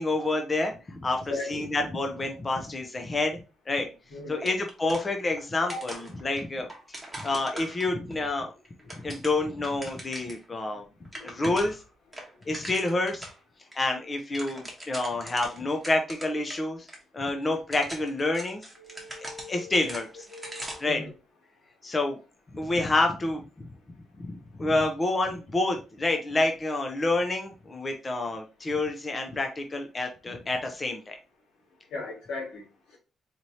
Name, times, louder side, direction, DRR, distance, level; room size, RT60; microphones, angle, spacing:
voice 1, 0.0-3.4 3.7-3.9 4.3-5.9 6.2-8.5 9.0-10.8 11.2-11.8 12.5-13.3 13.8-16.9 17.1-18.6 19.2-20.3 20.8-21.0 21.8-22.2 22.5-23.7 24.3-31.1, left 2 dB, 25° left, 4 dB, 0.5 m, -28 dB
voice 2, 0.9-1.7 4.1-4.6 5.7-5.8 8.8-8.9 10.2-10.8 11.1-11.5 18.8-20.0 20.3-21.1 31.9-33.0, left 3 dB, 85° left, -2 dB, 2.1 m, -39 dB
sound 1, 4.4-5.4 5.7-8.2 8.6-10.4 10.8-10.9 11.0-11.8 12.1-13.4 13.7-13.8 14.1-16.6 16.9-17.0 17.5-21.0, right 1 dB, 5° right, 1.1 m, -41 dB
4.2 x 3.1 x 2.7 m, 0.31 s
cardioid pair, 145°, 0 cm